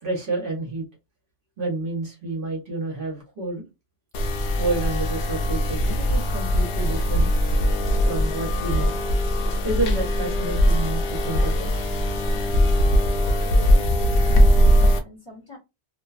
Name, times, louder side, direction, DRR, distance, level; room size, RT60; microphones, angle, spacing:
voice 1, 0.0-0.9 1.6-3.6 4.6-7.3 8.0-8.9 9.4-11.7, right 2 dB, 55° right, -1 dB, 1.0 m, -29 dB
sound 1, 4.1-15.0, equal, 85° left, 0.9 m, -20 dB
voice 2, 13.2-14.6 15.0-15.6, left 1 dB, 25° left, -5 dB, 1.1 m, -42 dB
2.5 x 2.2 x 2.3 m, 0.24 s
omnidirectional pair, 1.1 m